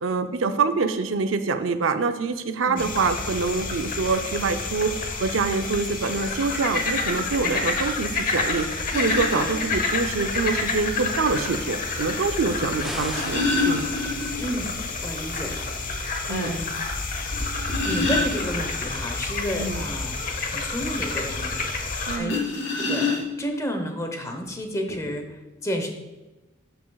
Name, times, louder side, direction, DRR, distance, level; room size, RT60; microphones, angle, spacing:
voice 1, 0.0-4.9 5.2-8.7 8.9-13.9 16.3-16.5 19.6-19.8 22.1-22.4, right 4 dB, 85° right, 9 dB, 0.6 m, -25 dB
sound 1, 2.8-22.2, left 3 dB, 45° left, 0.9 m, -29 dB
sound 2, 8.9-9.5 10.9-11.0 12.8-14.6 14.9-15.0 15.4-15.5 16.0-16.1 17.3-18.8 22.2-23.6 24.4-24.5 24.9-25.1, left 3 dB, 70° left, 2.6 m, -27 dB
sound 3, 12.8-14.4, equal, ahead, 0.4 m, -38 dB
voice 2, 14.4-14.7 15.0-16.8 17.9-22.4 22.8-25.9, equal, 15° left, 4 dB, 0.8 m, -32 dB
11.0 x 6.0 x 2.3 m, 1.1 s
head